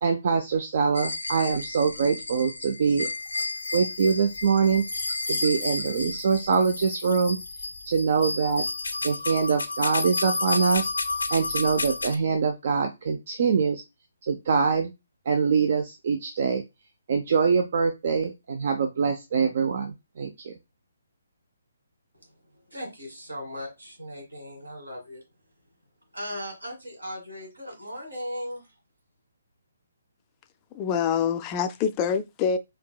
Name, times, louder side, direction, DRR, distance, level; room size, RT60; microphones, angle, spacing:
voice 1, 0.0-3.1 3.7-4.8 5.3-7.4 7.9-8.6 9.0-10.9 11.3-13.8 14.3-14.9 15.3-16.6 17.1-20.5, right 5 dB, 50° right, 0.5 m, -24 dB
sound 1, 0.9-12.1, left 3 dB, 75° left, 0.5 m, -31 dB
voice 2, 22.7-25.2 26.1-28.6, equal, 85° right, 2.3 m, -37 dB
voice 3, 30.7-32.6, left 7 dB, 25° left, 0.4 m, -25 dB
4.5 x 2.8 x 2.3 m
figure-of-eight pair, 140°, 0 cm